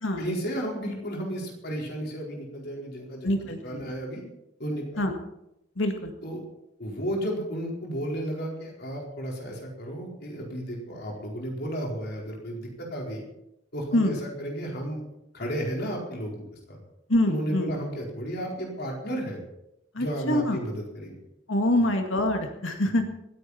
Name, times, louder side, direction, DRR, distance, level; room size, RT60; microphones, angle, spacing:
voice 1, 0.2-3.3 3.6-4.2 4.6-5.0 6.2-6.4 6.8-13.2 13.7-15.0 15.3-16.8 17.2-19.4 20.0-21.1 22.9-23.1, equal, 60° left, -1 dB, 4.4 m, -33 dB
voice 2, 3.2-3.9 5.0-5.1 5.8-6.1 13.9-14.1 17.1-17.7 19.9-20.6 21.5-23.1, left 1 dB, 85° left, 5 dB, 1.9 m, -25 dB
26.0 x 9.7 x 4.3 m, 0.84 s
head